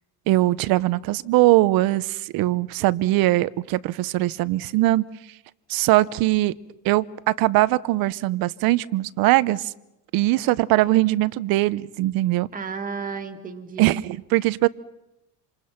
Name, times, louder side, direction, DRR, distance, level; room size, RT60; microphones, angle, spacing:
voice 1, 0.3-5.0 5.7-6.5 6.8-9.7 10.1-12.5 13.8-14.7, right 17 dB, 50° right, 0.8 m, -21 dB
voice 2, 2.8-3.3 12.5-13.9, right 5 dB, 20° right, 2.1 m, -34 dB
27.5 x 27.5 x 5.9 m
cardioid pair, 160°, 46 cm